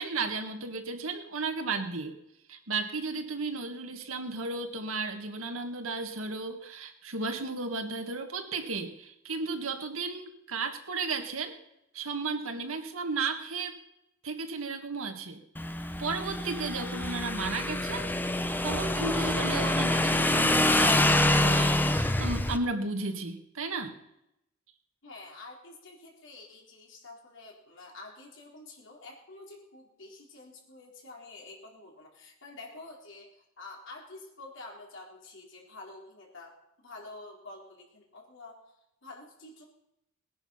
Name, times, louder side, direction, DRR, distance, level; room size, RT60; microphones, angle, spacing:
voice 1, 0.0-2.2 2.5-11.5 11.9-13.8 14.2-15.4 16.0-18.1 18.6-24.0, right 3 dB, 80° right, 6 dB, 1.8 m, -34 dB
Motorcycle / Engine, 15.6-22.6, left 1 dB, 10° left, 0.7 m, -26 dB
voice 2, 25.0-38.7 39.0-39.6, left 2 dB, 65° left, -1 dB, 4.1 m, -48 dB
19.0 x 10.5 x 5.7 m, 0.83 s
head